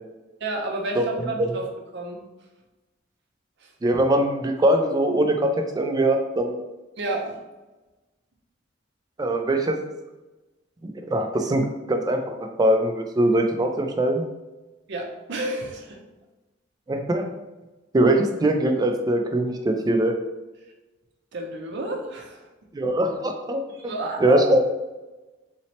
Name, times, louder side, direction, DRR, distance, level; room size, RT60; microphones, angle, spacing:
voice 1, 0.4-1.7 1.9-2.2 3.6-3.7 7.0-7.4 14.9-16.0 21.3-22.4 23.7-24.5, right 2 dB, 60° right, 1 dB, 0.6 m, -30 dB
voice 2, 1.0-1.5 3.8-6.6 9.2-9.8 10.8-14.2 16.9-17.2 17.9-20.1 22.7-23.9 24.2-24.6, right 1 dB, 20° right, 4 dB, 0.3 m, -22 dB
4.0 x 2.0 x 2.8 m, 1.1 s
head